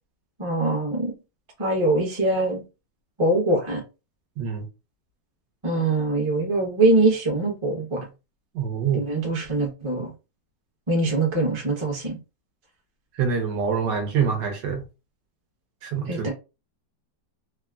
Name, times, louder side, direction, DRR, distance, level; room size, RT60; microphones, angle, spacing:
voice 1, 0.4-1.1 1.6-2.6 3.2-3.8 5.6-8.0 8.9-10.1 10.9-12.2 16.1-16.3, right 2 dB, 25° right, 0.7 m, -23 dB
voice 2, 4.4-4.7 8.5-9.1 13.2-14.8 15.8-16.3, right 6 dB, 75° right, 1.4 m, -25 dB
3.4 x 2.1 x 2.3 m
omnidirectional pair, 2.0 m